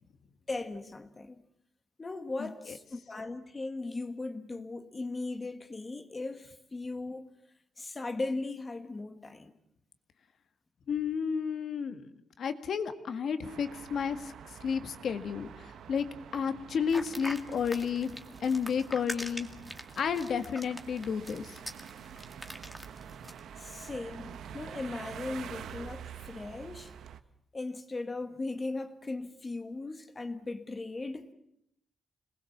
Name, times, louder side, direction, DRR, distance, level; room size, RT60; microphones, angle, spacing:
voice 1, 0.5-1.4 2.0-7.3 7.8-9.5 23.6-26.9 27.5-31.3, left 2 dB, 25° left, 1.6 m, -38 dB
voice 2, 10.9-12.1 12.4-14.3 14.6-16.1 16.3-19.5 20.0-21.5, left 6 dB, 65° left, 1.9 m, -32 dB
sound 1, 13.4-27.2, right 8 dB, 80° right, 1.1 m, -47 dB
sound 2, 16.9-23.4, equal, ahead, 2.1 m, -43 dB
26.5 x 20.0 x 7.3 m
cardioid pair, 120°, 0 cm